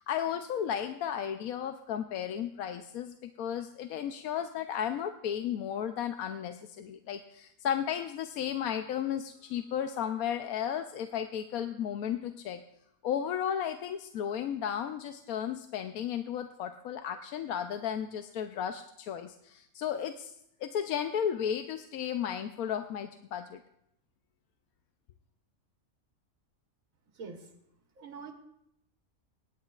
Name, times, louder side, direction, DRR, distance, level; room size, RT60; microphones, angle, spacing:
voice 1, 0.0-12.6 13.0-20.3 20.6-23.6, left 9 dB, 80° left, 7 dB, 1.1 m, -34 dB
voice 2, 27.1-27.5 28.0-28.3, right 5 dB, 70° right, 2 dB, 1.6 m, -44 dB
25.0 x 10.5 x 2.4 m, 0.79 s
omnidirectional pair, 1.5 m